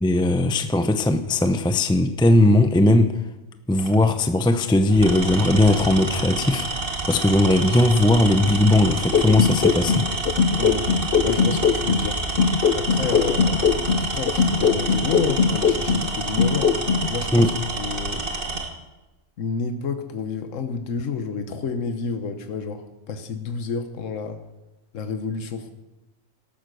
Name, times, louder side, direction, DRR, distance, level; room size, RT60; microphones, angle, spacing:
voice 1, 0.0-3.1 3.7-10.1 17.3-17.5, left 1 dB, 5° left, 9 dB, 0.5 m, -18 dB
Tools, 3.8-4.0 4.9-18.7, right 2 dB, 45° right, 1.7 m, -29 dB
sound 1, 9.1-12.1 12.4-16.1 16.4-17.1, left 6 dB, 55° left, 0.8 m, -20 dB
voice 2, 10.6-11.0 11.2-12.2 12.7-16.7 17.1-18.3 19.4-24.4 24.9-25.7, left 5 dB, 80° left, 8 dB, 1.4 m, -30 dB
13.0 x 11.5 x 6.3 m, 1.1 s
omnidirectional pair, 1.3 m